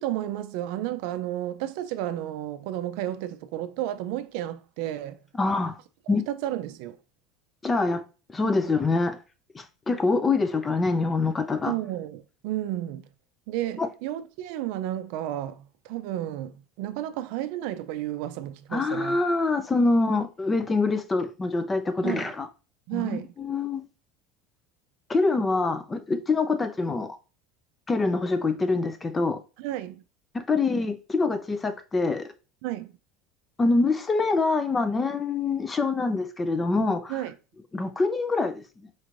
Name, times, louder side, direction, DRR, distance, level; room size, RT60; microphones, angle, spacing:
voice 1, 0.0-5.2 6.1-7.0 11.7-13.1 13.5-19.2 22.0-22.3 22.9-23.3 29.6-30.0 32.6-32.9 37.1-37.4, right 13 dB, 70° right, 0.4 m, -32 dB
voice 2, 5.3-5.8 6.1-6.2 7.6-8.0 8.3-9.2 9.5-11.7 13.8-13.9 18.7-22.5 22.9-23.1 23.4-23.8 25.1-27.2 27.9-29.4 30.3-32.3 33.6-37.1 37.7-38.6, left 3 dB, 15° left, 0.4 m, -25 dB
4.4 x 3.1 x 2.5 m
cardioid pair, 145°, 0 cm